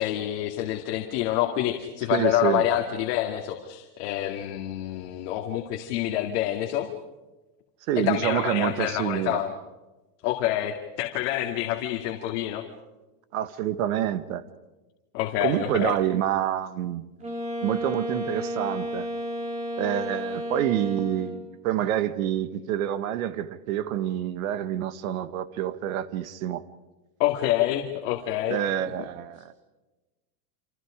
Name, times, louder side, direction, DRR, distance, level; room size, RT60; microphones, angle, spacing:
voice 1, 0.0-6.9 8.0-9.5 10.2-12.6 15.1-15.9 27.2-28.6, left 13 dB, 45° left, 2.3 m, -27 dB
voice 2, 2.1-2.6 7.9-9.4 13.3-14.4 15.4-17.0 17.6-19.1 19.8-26.6 28.5-29.5, right 11 dB, 60° right, 1.6 m, -27 dB
Wind instrument woodwind instrument, 17.2-21.5, equal, 15° right, 3.7 m, -32 dB
29.0 x 27.5 x 5.1 m
supercardioid pair, 175°, 47 cm